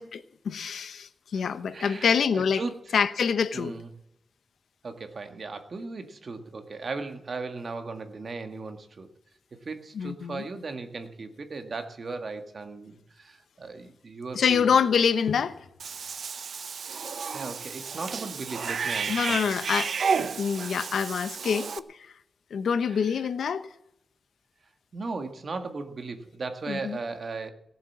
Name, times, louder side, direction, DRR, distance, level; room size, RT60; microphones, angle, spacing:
voice 1, 0.0-2.6 2.9-3.7 9.9-10.4 14.3-15.6 19.1-21.7 22.5-23.7 26.7-27.0, left 6 dB, 85° left, 0.9 m, -26 dB
voice 2, 1.7-2.9 3.5-3.9 4.8-9.1 9.7-14.8 17.3-19.6 22.9-23.3 24.9-27.5, right 3 dB, 45° right, 1.7 m, -37 dB
Cat / Bathtub (filling or washing), 15.8-21.8, right 6 dB, 65° right, 0.7 m, -32 dB
18.0 x 7.6 x 7.2 m
wide cardioid pair, 130°, 0 cm